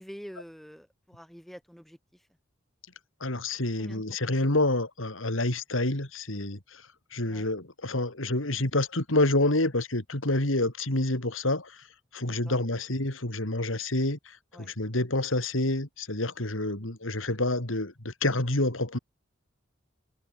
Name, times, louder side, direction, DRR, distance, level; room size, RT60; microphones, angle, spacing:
voice 1, 0.0-2.0 3.8-4.0 7.3-7.5 12.3-12.6 14.5-14.7, equal, ahead, 2.3 m, -46 dB
voice 2, 3.2-6.8 7.1-11.8 12.1-19.0, left 2 dB, 85° left, 3.8 m, -28 dB
head